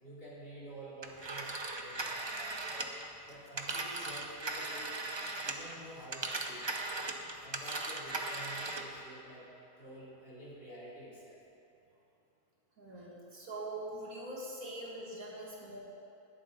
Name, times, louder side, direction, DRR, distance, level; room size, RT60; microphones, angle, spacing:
voice 1, 0.0-3.0 3.3-4.9 5.4-6.7 7.4-9.5 9.8-11.4, right 1 dB, 40° left, -8 dB, 3.2 m, -50 dB
Telephone, 1.0-5.7 6.0-9.0, right 2 dB, 30° right, 0.5 m, -38 dB
voice 2, 12.8-15.8, right 1 dB, 85° right, -4 dB, 2.6 m, -43 dB
20.0 x 7.5 x 3.9 m, 2.9 s
omnidirectional pair, 1.4 m